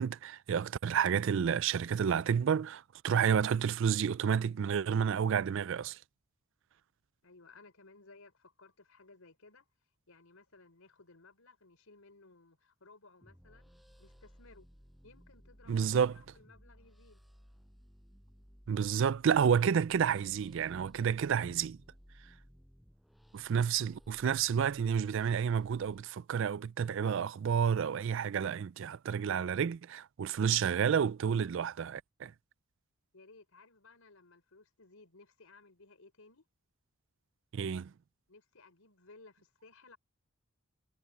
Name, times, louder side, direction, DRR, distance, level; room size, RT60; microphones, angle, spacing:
voice 1, 0.0-6.0 15.7-16.1 18.7-21.8 23.3-32.3 37.5-37.9, right 7 dB, 60° right, 0.3 m, -30 dB
voice 2, 7.2-9.7 10.1-13.7 14.0-14.7 15.0-17.2 33.1-36.4 38.3-40.0, left 3 dB, 80° left, 4.3 m, -59 dB
sound 1, 13.2-26.0, equal, ahead, 5.7 m, -60 dB
head